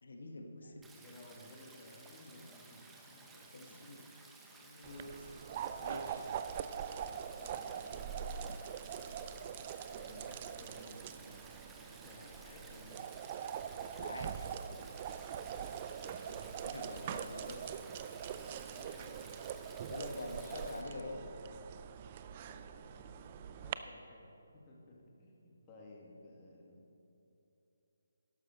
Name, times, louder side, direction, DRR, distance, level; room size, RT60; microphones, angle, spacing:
voice 1, 0.0-0.9 3.3-4.1 4.5-6.3 14.0-14.6 16.0-17.8 19.6-21.3, left 2 dB, 60° left, 3 dB, 1.4 m, -47 dB
voice 2, 0.6-3.4 3.7-3.9 7.4-8.6 9.9-13.1 18.7-19.1 22.5-26.9, left 2 dB, 20° left, -2 dB, 2.1 m, -57 dB
Stream, 0.8-20.8, right 3 dB, 5° right, 0.8 m, -57 dB
sound 1, 4.8-23.7, right 8 dB, 30° right, 0.4 m, -43 dB
12.0 x 12.0 x 4.0 m, 2.9 s
figure-of-eight pair, 150°, 0 cm